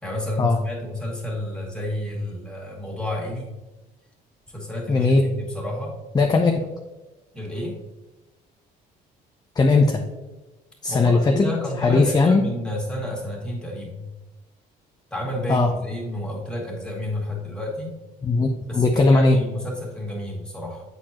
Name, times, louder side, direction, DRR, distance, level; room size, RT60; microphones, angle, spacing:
voice 1, 0.0-3.5 4.5-6.0 7.3-7.8 10.9-14.0 15.1-18.0 18.7-20.8, left 1 dB, 5° left, -3 dB, 2.1 m, -30 dB
voice 2, 4.9-5.3 6.1-6.7 9.6-10.0 10.8-11.5 11.8-12.4 15.5-15.7 18.2-19.4, left 3 dB, 25° left, 3 dB, 0.6 m, -18 dB
8.0 x 4.5 x 2.9 m, 1.1 s
cardioid pair, 110°, 17 cm